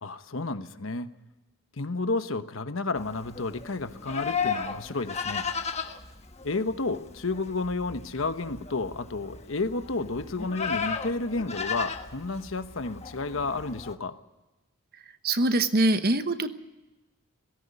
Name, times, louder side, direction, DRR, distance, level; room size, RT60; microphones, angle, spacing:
voice 1, 0.0-1.1 1.8-5.5 6.4-14.2, left 3 dB, 70° left, 10 dB, 1.1 m, -31 dB
Livestock farm animals working animals, 3.0-13.9, left 6 dB, 30° left, 1.2 m, -35 dB
voice 2, 15.2-16.5, right 2 dB, 45° right, 10 dB, 1.1 m, -23 dB
18.0 x 16.5 x 9.7 m, 1.1 s
head